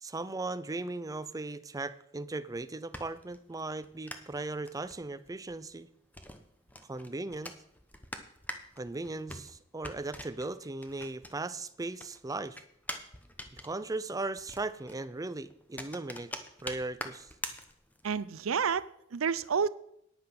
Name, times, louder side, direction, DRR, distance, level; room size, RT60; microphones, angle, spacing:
voice 1, 0.0-5.9 6.9-7.5 8.8-12.6 13.5-16.3 16.6-17.3, right 2 dB, 15° right, 14 dB, 0.5 m, -37 dB
sound 1, 2.5-11.7 12.0-18.2, left 1 dB, 10° left, 1.0 m, -45 dB
voice 2, 18.0-19.7, right 6 dB, 85° right, 17 dB, 0.5 m, -30 dB
9.8 x 8.8 x 5.9 m, 0.72 s
head